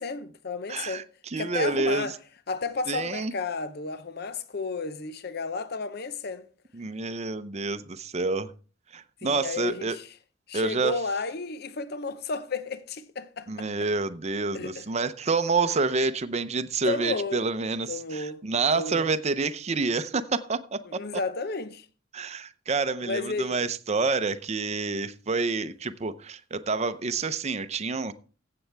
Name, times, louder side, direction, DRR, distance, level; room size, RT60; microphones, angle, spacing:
voice 1, 0.0-1.1 1.4-2.1 2.5-6.5 9.2-10.1 10.5-13.7 14.5-14.8 16.9-17.4 17.9-18.4 18.7-19.1 20.9-21.9 23.0-23.5, left 3 dB, 55° left, 0.7 m, -32 dB
voice 2, 0.7-2.2 2.9-3.3 6.7-8.5 8.9-10.0 10.5-11.0 13.5-21.0 22.1-28.1, right 4 dB, 35° right, 0.6 m, -28 dB
15.0 x 7.7 x 3.4 m
head